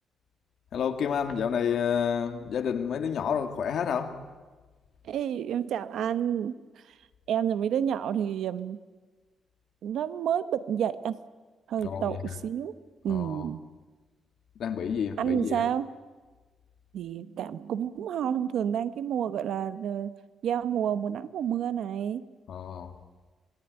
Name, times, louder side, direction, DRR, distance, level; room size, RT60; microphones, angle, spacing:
voice 1, 0.7-4.2 11.8-12.3 13.1-13.5 14.6-15.7 22.5-23.0, left 7 dB, 55° left, 7 dB, 1.9 m, -30 dB
voice 2, 5.0-6.6 7.3-8.8 9.8-11.2 11.7-12.2 12.4-12.7 13.0-13.6 15.2-15.9 16.9-20.1 20.4-22.2, right 9 dB, 65° right, 13 dB, 0.9 m, -29 dB
26.0 x 20.0 x 9.2 m, 1.3 s
cardioid pair, 175°, 0 cm